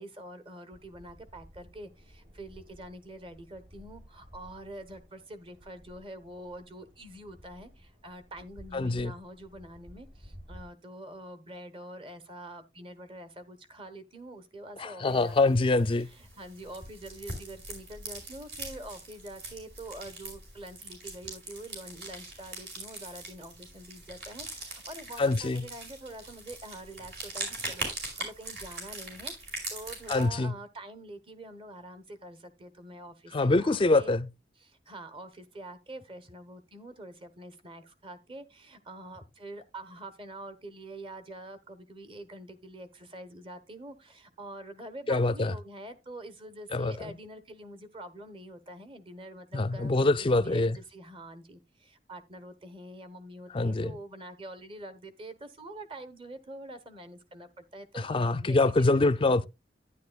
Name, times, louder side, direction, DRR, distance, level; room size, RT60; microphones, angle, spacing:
voice 1, 0.0-15.6 16.2-27.9 28.2-34.1 34.6-59.4, right 1 dB, 30° right, 1.1 m, -45 dB
sound 1, 0.7-10.7, equal, 50° right, 6.0 m, -54 dB
voice 2, 8.7-9.1 14.8-16.1 25.2-25.6 30.1-30.5 33.3-34.3 45.1-45.5 46.7-47.1 49.5-50.8 53.5-54.0 57.9-59.5, left 2 dB, 30° left, 0.4 m, -25 dB
sound 2, 15.0-30.2, right 2 dB, 65° right, 5.1 m, -42 dB
11.5 x 10.0 x 2.3 m
head